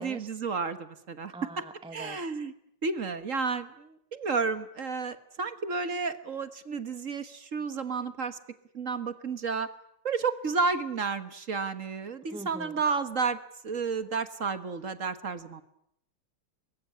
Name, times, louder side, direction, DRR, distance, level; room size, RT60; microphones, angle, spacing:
voice 1, 0.0-1.3 1.9-2.5 2.8-8.4 8.7-9.7 10.0-13.4 13.6-15.6, right 4 dB, 40° right, 11 dB, 1.6 m, -31 dB
voice 2, 1.3-2.2 12.3-12.8, right 2 dB, 5° right, 10 dB, 0.7 m, -42 dB
24.0 x 21.0 x 9.9 m, 0.73 s
omnidirectional pair, 2.3 m